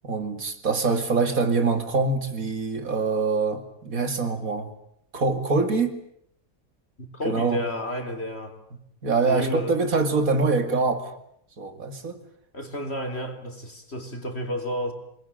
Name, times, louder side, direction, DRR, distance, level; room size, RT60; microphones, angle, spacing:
voice 1, 0.0-4.7 5.1-6.0 7.2-7.6 9.0-11.1 11.6-12.2, right 4 dB, 80° right, 2.9 m, -24 dB
voice 2, 7.0-8.6 9.2-9.8 12.5-14.9, equal, 45° left, 4.1 m, -31 dB
27.5 x 21.0 x 9.1 m
omnidirectional pair, 1.5 m